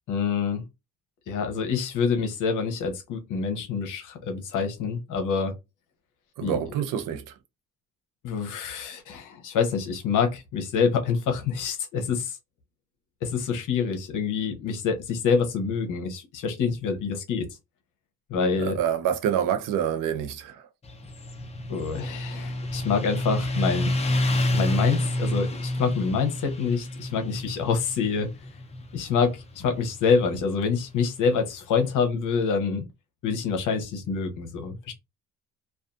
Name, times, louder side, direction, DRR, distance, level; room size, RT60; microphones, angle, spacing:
voice 1, 0.1-0.6 1.3-5.5 6.4-6.6 8.2-12.4 13.2-17.5 18.3-18.8 21.7-23.9 24.5-28.3 28.9-32.8 33.2-34.9, left 5 dB, 70° left, 0.8 m, -26 dB
voice 2, 6.4-7.2 18.6-20.7, right 9 dB, 80° right, 0.6 m, -27 dB
Motorcycle, 20.8-32.0, left 1 dB, 20° left, 0.4 m, -29 dB
2.6 x 2.4 x 2.3 m
cardioid pair, 135°, 32 cm